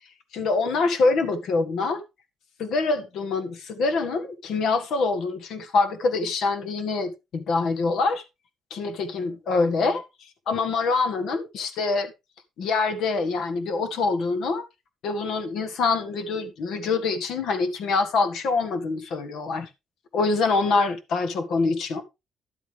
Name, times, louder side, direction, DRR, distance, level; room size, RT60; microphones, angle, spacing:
voice 1, 0.3-2.0 2.6-8.2 8.7-10.0 10.5-12.1 12.6-14.6 15.0-19.7 20.1-22.0, left 3 dB, 75° left, 1.8 m, -25 dB
11.5 x 8.3 x 3.4 m
cardioid pair, 90°, 0 cm